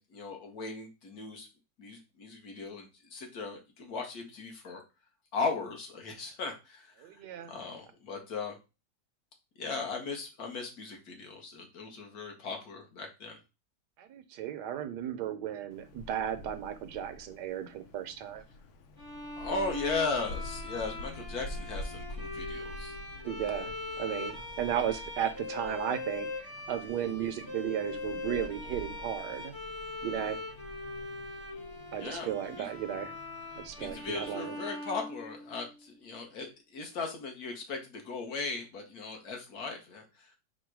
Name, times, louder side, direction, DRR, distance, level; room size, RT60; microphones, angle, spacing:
voice 1, 0.0-1.5 1.8-4.8 5.3-7.1 7.5-8.6 9.6-13.4 19.4-22.9 32.0-32.7 33.8-40.3, left 4 dB, 60° left, 1.5 m, -37 dB
voice 2, 7.0-7.6 14.0-18.4 23.2-26.3 26.7-29.5 30.0-30.4 31.9-33.1 33.6-34.6, right 10 dB, 75° right, 1.2 m, -35 dB
Wind, 15.7-34.3, left 1 dB, 85° left, 0.6 m, -47 dB
sound 1, 19.0-35.8, left 2 dB, 30° left, 0.4 m, -41 dB
4.7 x 2.2 x 4.6 m
omnidirectional pair, 1.9 m